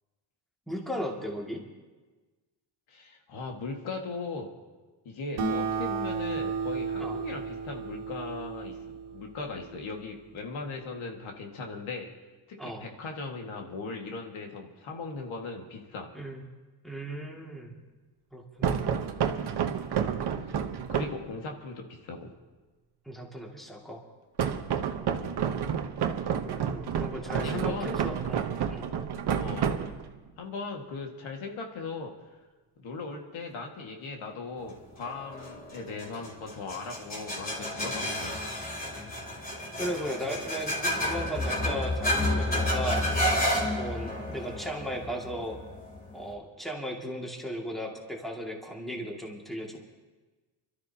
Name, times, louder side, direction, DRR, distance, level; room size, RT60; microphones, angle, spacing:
voice 1, 0.7-1.6 7.0-7.2 12.6-12.8 16.1-16.4 16.8-17.8 18.3-18.8 23.1-24.0 26.4-28.9 39.8-43.1 43.6-45.6 46.1-49.8, equal, ahead, -1 dB, 2.2 m, -36 dB
voice 2, 2.9-4.5 5.1-12.1 12.5-16.1 18.6-18.9 20.3-20.6 20.9-22.3 25.1-25.4 27.4-27.9 29.4-29.8 30.4-32.1 32.8-38.4 44.1-44.3, left 3 dB, 85° left, 2 dB, 1.9 m, -38 dB
Acoustic guitar, 5.4-10.2, right 5 dB, 85° right, 1.9 m, -34 dB
sound 1, 18.6-21.3 24.4-30.3, right 8 dB, 55° right, 1.0 m, -30 dB
sound 2, 35.0-46.3, left 1 dB, 20° left, 3.0 m, -31 dB
29.0 x 13.0 x 2.8 m, 1.3 s
wide cardioid pair, 135°, 46 cm